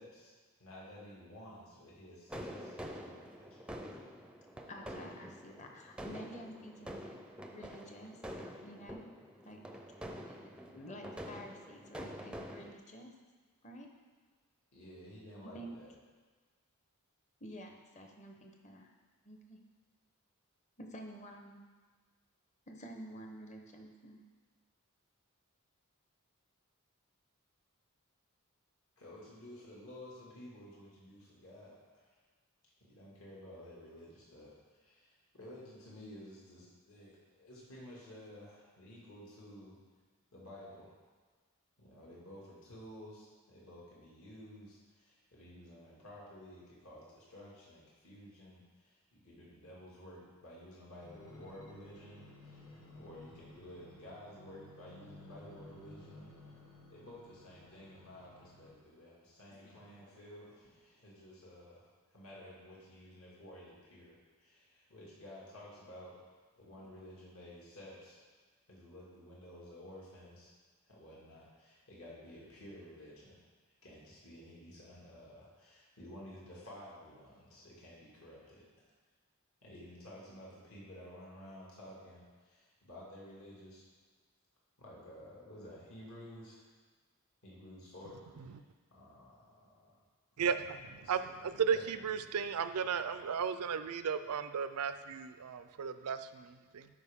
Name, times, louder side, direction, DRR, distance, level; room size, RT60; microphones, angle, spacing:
voice 1, 0.0-3.7 14.7-15.9 29.0-32.1 32.8-39.8 40.3-40.9 41.8-56.3 56.9-66.1 66.6-68.2 68.7-70.5 70.8-73.4 73.8-78.6 79.6-83.8 84.8-86.6 87.4-88.5 88.9-90.0 91.0-91.3 91.7-91.8, left 1 dB, 65° left, -6 dB, 2.1 m, -53 dB
sound 1, 2.3-12.7, equal, 5° right, 0.5 m, -47 dB
voice 2, 4.7-7.1 7.5-8.2 8.6-9.0 9.4-9.6 10.3-10.4 10.7-13.1 13.6-13.9 15.4-15.8 17.4-18.9 19.2-19.6 20.8-21.6 22.7-24.2, equal, 30° left, 2 dB, 0.9 m, -50 dB
sound 2, 51.0-58.9 59.5-60.8 61.4-61.5, left 2 dB, 90° left, 1.5 m, -56 dB
voice 3, 90.4-96.9, right 6 dB, 90° right, 11 dB, 0.4 m, -35 dB
12.5 x 5.1 x 3.6 m, 1.4 s
head